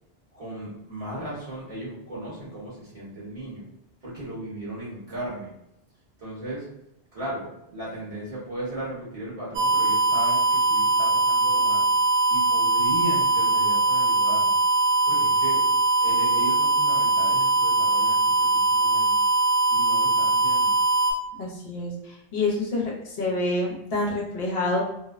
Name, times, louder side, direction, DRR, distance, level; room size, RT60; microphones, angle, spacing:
voice 1, 0.3-3.6 4.0-5.5 6.2-6.7 7.1-11.8 12.3-14.6 15.0-15.6 16.0-19.1 19.7-20.7, right 1 dB, 30° right, -8 dB, 1.1 m, -36 dB
sound 1, 9.5-21.1, right 2 dB, 60° right, 0.6 m, -21 dB
voice 2, 21.4-24.8, left 2 dB, 65° left, -2 dB, 0.8 m, -27 dB
2.6 x 2.0 x 2.3 m, 0.82 s
omnidirectional pair, 1.2 m